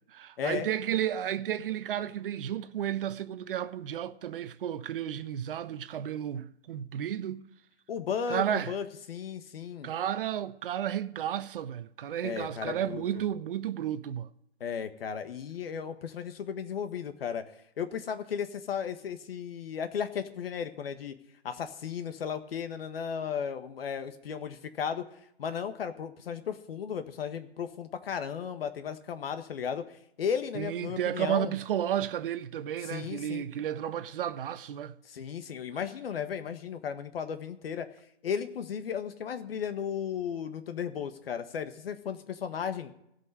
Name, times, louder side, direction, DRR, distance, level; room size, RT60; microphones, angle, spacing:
voice 1, 0.1-7.5 8.3-8.7 9.8-14.3 30.5-34.9, right 10 dB, 55° right, 0.9 m, -32 dB
voice 2, 7.9-9.9 12.2-13.2 14.6-17.4 17.8-21.2 21.4-25.0 25.4-31.5 32.8-33.4 35.0-37.9 38.2-42.9, left 7 dB, 60° left, 1.5 m, -35 dB
16.0 x 5.6 x 9.9 m
hypercardioid pair, 140°, 33 cm